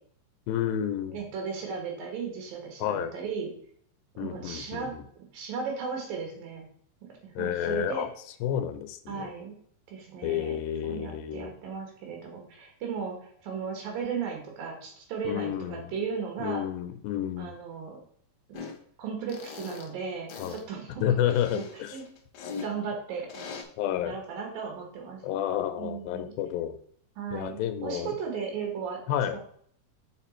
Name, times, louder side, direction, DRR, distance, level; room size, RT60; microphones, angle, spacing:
voice 1, 0.5-1.2 2.8-3.1 4.2-5.0 7.4-8.1 8.4-9.3 10.2-11.5 15.2-15.9 16.4-17.6 20.4-20.6 21.0-22.0 23.8-24.2 25.2-26.8 27.3-28.2 29.1-29.4, left 10 dB, 90° left, 9 dB, 2.4 m, -30 dB
voice 2, 1.1-3.5 4.2-5.0 5.3-6.7 7.2-8.1 9.1-9.6 9.9-10.6 10.8-16.7 17.4-18.0 18.5-18.6 19.0-21.1 21.5-21.6 21.9-22.0 22.6-23.5 24.0-25.2 25.8-26.3 27.2-29.0 29.3-29.4, right 6 dB, 80° right, 1 dB, 3.4 m, -36 dB
sound 1, 18.5-18.8 19.3-19.9 20.3-20.6 21.3-22.7 23.3-23.6, left 5 dB, 65° left, 1.9 m, -40 dB
6.5 x 5.0 x 4.3 m, 0.62 s
omnidirectional pair, 4.1 m